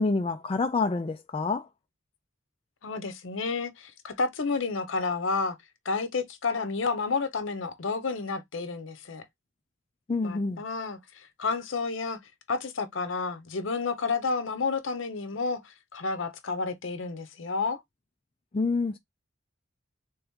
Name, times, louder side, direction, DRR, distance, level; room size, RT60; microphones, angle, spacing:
voice 1, 0.0-1.7 10.1-10.6 18.5-19.0, left 3 dB, 30° left, 0.3 m, -27 dB
voice 2, 2.8-5.6 5.8-9.2 10.2-12.2 12.5-17.8, left 4 dB, 75° left, 0.7 m, -30 dB
3.4 x 2.9 x 3.5 m
head